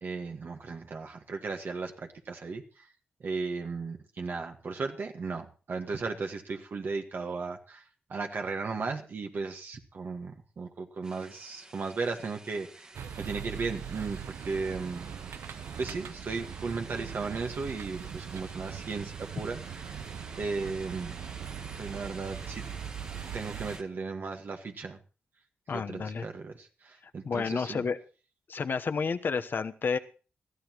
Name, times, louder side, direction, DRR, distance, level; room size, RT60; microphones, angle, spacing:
voice 1, 0.0-2.8 3.2-7.8 8.1-15.1 15.4-20.0 20.4-21.1 21.8-22.6 23.3-25.0 25.7-27.8, right 4 dB, 60° right, 3 dB, 1.7 m, -36 dB
sound 1, 11.0-23.8, right 1 dB, 20° right, 1.6 m, -50 dB
sound 2, 12.9-23.8, right 8 dB, 85° right, 0.9 m, -41 dB
voice 2, 25.7-26.3 27.0-28.0 28.5-30.0, left 5 dB, 60° left, 9 dB, 1.1 m, -31 dB
21.0 x 14.0 x 3.1 m, 0.36 s
cardioid pair, 90°, 4 cm